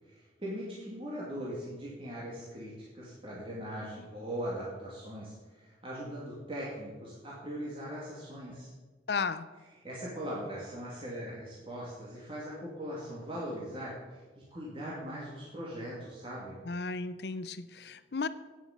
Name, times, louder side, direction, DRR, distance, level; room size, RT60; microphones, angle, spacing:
voice 1, 0.1-8.7 9.8-16.6, equal, 30° right, 2.5 m, -40 dB
voice 2, 9.1-9.5 16.6-18.3, left 4 dB, 70° left, 0.6 m, -34 dB
9.4 x 9.1 x 7.2 m
head